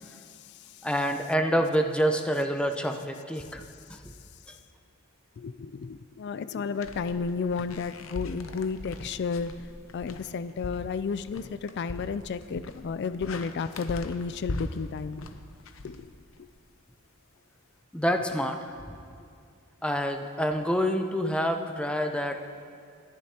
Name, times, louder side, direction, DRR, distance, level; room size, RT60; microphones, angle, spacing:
voice 1, 0.0-0.8 5.4-9.5 9.9-15.3 15.8-16.1, left 5 dB, 55° left, 13 dB, 0.3 m, -32 dB
voice 2, 0.8-3.6 3.9-4.0 17.9-18.7 19.8-22.4, equal, 5° left, 5 dB, 0.7 m, -27 dB
sound 1, 6.8-16.6, left 2 dB, 70° left, 0.7 m, -41 dB
28.0 x 10.5 x 2.9 m, 2.3 s
head